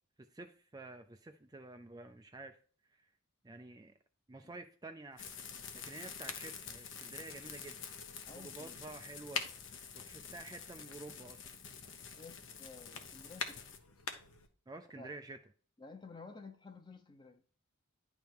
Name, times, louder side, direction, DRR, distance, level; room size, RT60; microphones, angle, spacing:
voice 1, 0.3-2.6 3.4-3.9 4.3-5.3 5.7-7.8 8.4-9.4 9.9-11.4 14.7-15.4, right 2 dB, 15° right, 0.4 m, -49 dB
sound 1, 5.1-14.5, left 5 dB, 80° left, 1.1 m, -48 dB
sound 2, 5.2-13.8, left 7 dB, 60° left, 0.9 m, -49 dB
voice 2, 8.3-8.8 12.2-13.6 14.9-15.2 15.8-17.4, left 3 dB, 20° left, 0.9 m, -53 dB
10.5 x 3.5 x 4.5 m
head